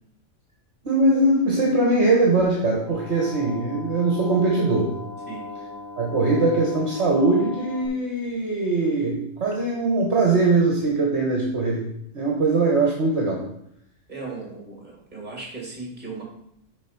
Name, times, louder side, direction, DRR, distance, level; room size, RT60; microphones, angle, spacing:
voice 1, 0.8-4.9 6.0-11.8 12.1-13.4, right 2 dB, 60° right, -1 dB, 1.6 m, -21 dB
sound 1, 2.9-7.9, left 3 dB, 15° right, 2.1 m, -38 dB
voice 2, 14.1-16.2, right 3 dB, 35° right, -1 dB, 2.7 m, -36 dB
7.0 x 5.1 x 6.0 m, 0.72 s
omnidirectional pair, 1.3 m